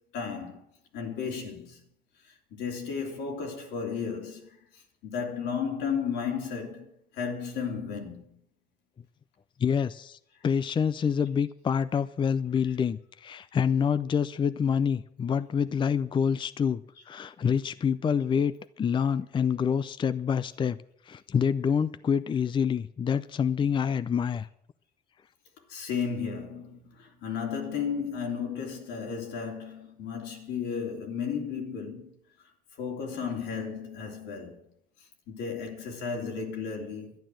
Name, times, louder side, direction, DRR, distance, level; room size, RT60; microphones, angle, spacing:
voice 1, 0.1-0.6 0.9-1.8 2.3-4.6 5.0-8.3 12.6-12.7 16.9-17.0 25.7-32.1 32.8-34.6 35.3-37.1, left 6 dB, 85° left, 3.1 m, -34 dB
voice 2, 9.6-20.8 21.1-24.5, left 7 dB, 30° left, 0.5 m, -27 dB
11.5 x 10.5 x 7.6 m
cardioid pair, 110°, 17 cm